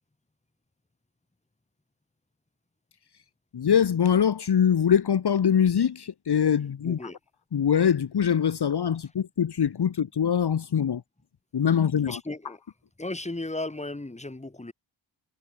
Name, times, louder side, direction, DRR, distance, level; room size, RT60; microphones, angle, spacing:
voice 1, 3.5-7.0 7.5-11.0 11.5-12.2, left 8 dB, 55° left, 1.6 m, -23 dB
voice 2, 6.8-7.2 12.1-12.6 13.0-14.7, left 2 dB, 15° left, 3.8 m, -35 dB
wide cardioid pair, 105°, 46 cm